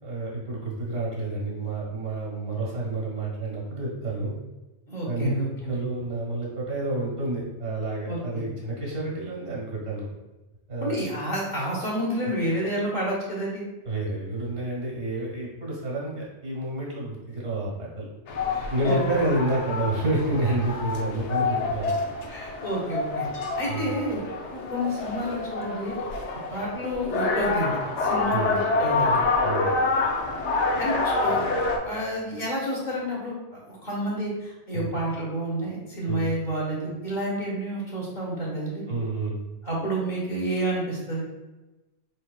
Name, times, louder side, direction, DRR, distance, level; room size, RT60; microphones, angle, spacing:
voice 1, 0.0-4.4 5.0-5.3 5.7-10.1 10.7-11.0 12.2-12.3 13.9-18.1 18.7-22.1 23.7-23.9 28.3-28.5 29.4-29.7 34.7-35.0 36.1-36.2 38.9-39.4, right 2 dB, 65° right, -4 dB, 1.8 m, -29 dB
voice 2, 4.9-5.8 8.1-8.2 10.8-13.6 18.5-19.3 22.3-23.3 23.6-24.2 24.5-26.0 26.5-29.2 30.8-31.5 31.8-38.8 39.6-41.2, right 1 dB, 40° left, -5 dB, 1.3 m, -30 dB
sound 1, 18.3-31.8, left 3 dB, 75° left, 0.9 m, -27 dB
4.6 x 4.0 x 2.2 m, 1.1 s
omnidirectional pair, 1.2 m